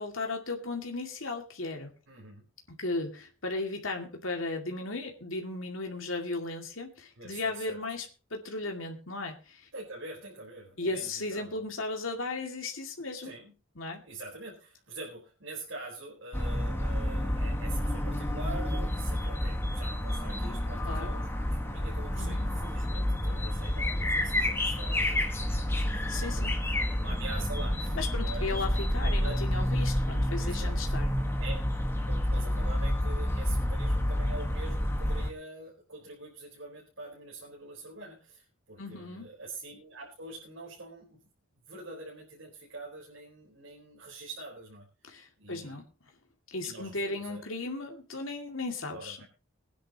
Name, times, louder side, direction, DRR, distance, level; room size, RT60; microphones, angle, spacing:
voice 1, 0.0-1.9 2.8-9.7 10.8-13.3 13.8-14.0 20.9-21.1 22.2-22.5 25.7-26.5 28.0-31.1 38.8-39.3 45.1-45.9 46.5-49.2, left 3 dB, 85° left, 3 dB, 2.3 m, -36 dB
voice 2, 2.1-2.5 7.2-7.8 9.7-11.6 13.2-13.5 14.0-28.6 29.1-29.4 30.4-30.9 31.4-31.6 32.1-41.2 41.7-44.9 45.4-45.8 46.6-47.4 48.9-49.2, right 2 dB, 75° right, -3 dB, 4.2 m, -45 dB
sound 1, 16.3-35.3, left 1 dB, 10° left, 1.4 m, -29 dB
22.5 x 10.0 x 2.9 m, 0.31 s
head